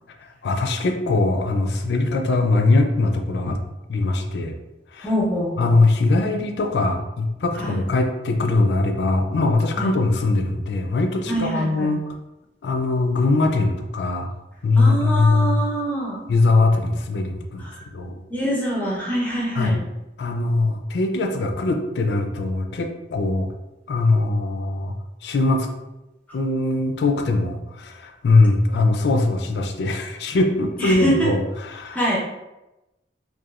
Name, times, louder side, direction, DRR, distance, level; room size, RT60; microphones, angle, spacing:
voice 1, 0.4-3.6 3.9-4.5 4.9-5.1 5.6-12.0 12.6-14.3 14.6-15.6 16.3-17.7 17.9-18.2 19.6-19.8 20.2-23.5 23.9-25.7 26.3-32.0, left 2 dB, 70° left, 4 dB, 0.4 m, -21 dB
voice 2, 5.0-5.7 7.5-7.8 9.8-9.9 11.3-11.9 14.8-16.2 17.6-17.8 18.3-19.8 30.8-31.3 31.9-32.2, right 1 dB, 10° left, -6 dB, 0.6 m, -25 dB
2.8 x 2.3 x 2.3 m, 0.98 s
head